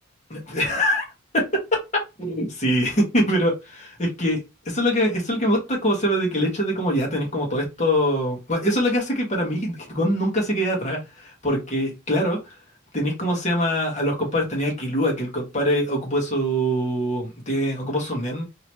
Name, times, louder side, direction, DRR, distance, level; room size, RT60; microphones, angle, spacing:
voice 1, 0.3-1.1 1.3-1.4 2.2-4.4 4.6-12.4 12.9-18.4, equal, 35° left, 1.4 m, -23 dB
3.0 x 2.9 x 3.0 m
head